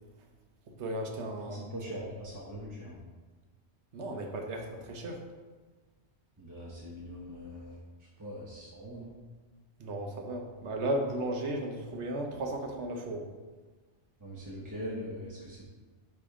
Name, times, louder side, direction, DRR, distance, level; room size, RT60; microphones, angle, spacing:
voice 1, 0.7-1.6 3.9-5.2 9.8-13.3, right 1 dB, 75° right, 3 dB, 1.1 m, -35 dB
voice 2, 1.5-3.0 6.4-9.2 14.2-15.6, equal, 20° right, -6 dB, 0.9 m, -42 dB
9.9 x 3.4 x 3.6 m, 1.3 s
omnidirectional pair, 1.2 m